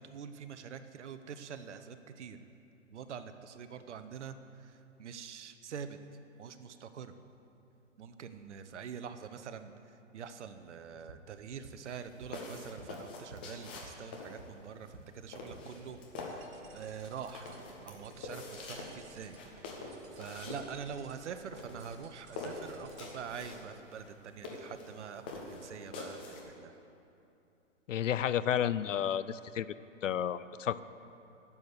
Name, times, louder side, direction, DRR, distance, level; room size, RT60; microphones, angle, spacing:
voice 1, 0.0-2.4 2.9-6.0 6.4-7.1 8.0-16.0 16.3-16.4 16.7-17.5 17.8-19.4 20.1-26.7, right 7 dB, 60° right, 10 dB, 0.9 m, -45 dB
sound 1, 10.9-15.1 15.4-16.2, right 3 dB, 80° right, 2.1 m, -54 dB
sound 2, 11.7-26.4, left 3 dB, 10° left, 0.3 m, -46 dB
sound 3, 16.2-23.7, right 5 dB, 20° right, 0.8 m, -58 dB
voice 2, 27.9-29.7 30.0-30.8, left 9 dB, 75° left, 16 dB, 0.6 m, -31 dB
10.5 x 7.2 x 8.2 m, 2.7 s
hypercardioid pair, 125°, 39 cm